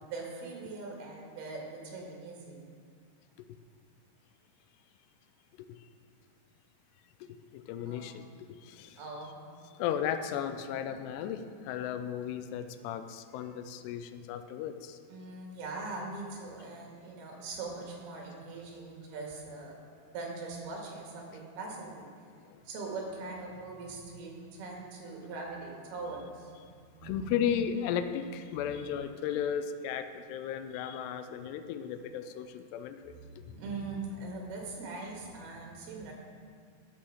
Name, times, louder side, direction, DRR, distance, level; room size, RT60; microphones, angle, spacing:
voice 1, 0.0-2.7 7.9-8.2 9.0-9.4 15.1-19.8 20.1-22.1 22.7-27.4 33.1-36.1, right 3 dB, 75° right, -1 dB, 3.6 m, -41 dB
voice 2, 7.5-9.0 9.7-15.0 22.4-22.6 27.0-33.2, left 8 dB, 85° left, 9 dB, 2.7 m, -35 dB
9.3 x 7.2 x 6.3 m, 2.2 s
omnidirectional pair, 4.7 m